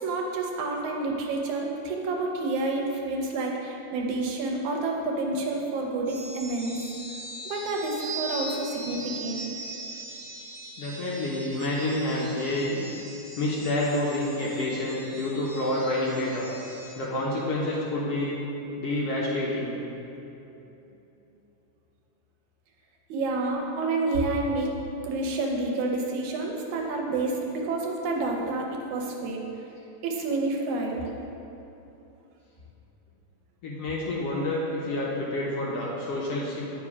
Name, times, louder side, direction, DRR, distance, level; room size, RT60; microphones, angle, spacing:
voice 1, 0.0-6.8 7.5-9.4 23.1-24.8 25.0-29.4 30.0-31.0, right 2 dB, 75° right, 0 dB, 2.1 m, -29 dB
sound 1, 6.1-16.9, right 3 dB, 55° right, 1.7 m, -40 dB
voice 2, 10.8-12.8 13.4-16.5 17.0-18.4 18.8-19.7 33.6-36.6, left 1 dB, 70° left, -5 dB, 1.5 m, -28 dB
9.0 x 4.8 x 4.9 m, 3.0 s
omnidirectional pair, 3.6 m